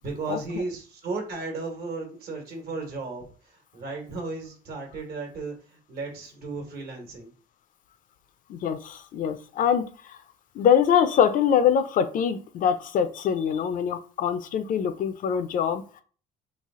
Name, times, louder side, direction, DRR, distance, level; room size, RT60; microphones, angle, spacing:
voice 1, 0.0-7.3, right 3 dB, 70° right, 2 dB, 1.3 m, -35 dB
voice 2, 8.5-10.2 10.6-15.8, left 8 dB, 55° left, 12 dB, 0.4 m, -24 dB
3.2 x 2.4 x 3.6 m, 0.40 s
cardioid pair, 110°, 17 cm